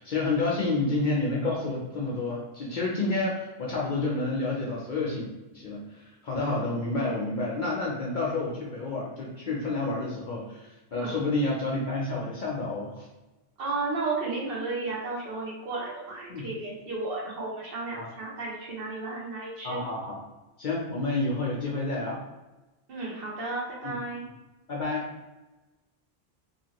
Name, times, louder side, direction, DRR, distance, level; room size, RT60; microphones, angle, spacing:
voice 1, 0.0-5.3 5.5-13.1 16.3-16.5 17.9-18.1 19.6-20.2 20.6-22.2 23.8-24.0 24.7-25.1, left 2 dB, 55° left, -4 dB, 0.6 m, -29 dB
voice 2, 13.6-19.8 22.9-24.3, right 3 dB, 55° right, -3 dB, 0.9 m, -33 dB
2.8 x 2.6 x 2.8 m, 1.1 s
omnidirectional pair, 1.2 m